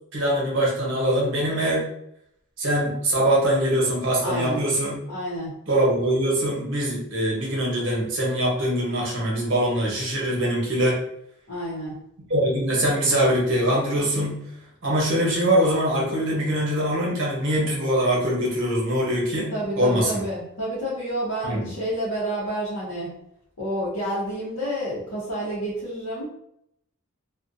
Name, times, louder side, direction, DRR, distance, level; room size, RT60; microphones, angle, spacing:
voice 1, 0.1-1.9 2.6-5.0 5.7-11.0 12.3-14.4 14.8-20.2 21.4-21.7, right 1 dB, 60° right, -3 dB, 0.9 m, -23 dB
voice 2, 4.2-4.6 5.1-5.5 11.5-11.9 19.5-23.1 23.6-26.2, right 1 dB, 75° left, -8 dB, 0.7 m, -29 dB
2.5 x 2.1 x 2.5 m, 0.77 s
head